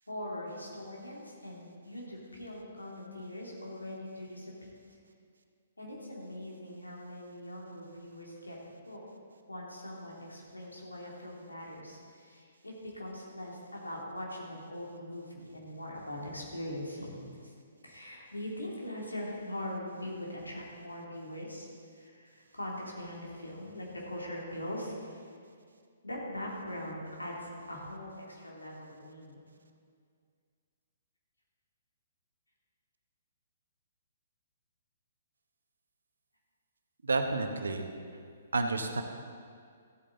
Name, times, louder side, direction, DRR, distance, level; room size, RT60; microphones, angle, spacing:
voice 1, 0.1-5.0 5.8-9.0 9.5-17.5 17.8-21.7 21.9-25.2 26.0-29.4, left 1 dB, 90° left, -3 dB, 2.6 m, -42 dB
voice 2, 37.0-37.9 38.5-39.0, right 3 dB, 75° right, 6 dB, 1.0 m, -30 dB
14.0 x 8.5 x 3.9 m, 2.2 s
figure-of-eight pair, 125°, 0 cm